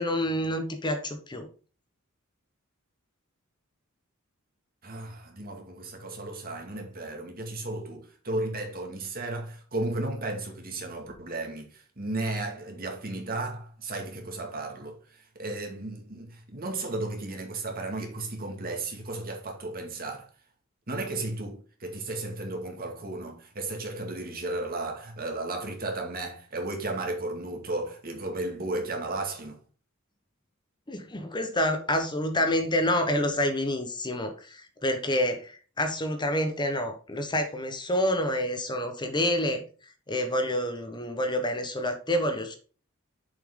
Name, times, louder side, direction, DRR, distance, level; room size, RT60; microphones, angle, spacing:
voice 1, 0.0-1.5 30.9-39.6 40.1-42.6, left 1 dB, 20° left, 1.0 m, -28 dB
voice 2, 4.8-20.3 20.9-29.6, right 2 dB, 45° right, 2.0 m, -34 dB
7.1 x 5.7 x 3.7 m
head